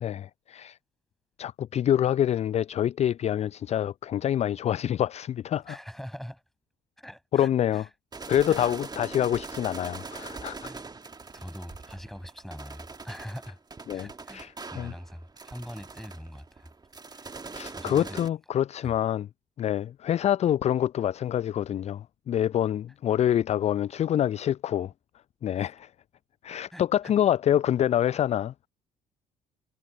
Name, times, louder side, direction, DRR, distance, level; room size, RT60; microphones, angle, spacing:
voice 1, 0.0-0.8 1.4-5.8 7.3-7.8 8.3-10.7 13.9-14.9 17.5-19.3 19.6-24.9 25.4-25.9 26.4-28.5, left 10 dB, 35° left, 0.5 m, -26 dB
voice 2, 5.7-6.4 7.0-7.9 8.5-8.7 10.6-10.8 11.3-13.6 13.9-16.7 17.1-17.3 17.7-18.2 18.8-18.9 25.6-25.7 26.7-27.1, equal, ahead, 5.9 m, -43 dB
sound 1, 8.1-18.3, right 4 dB, 20° right, 1.8 m, -42 dB
figure-of-eight pair, 50°, 19 cm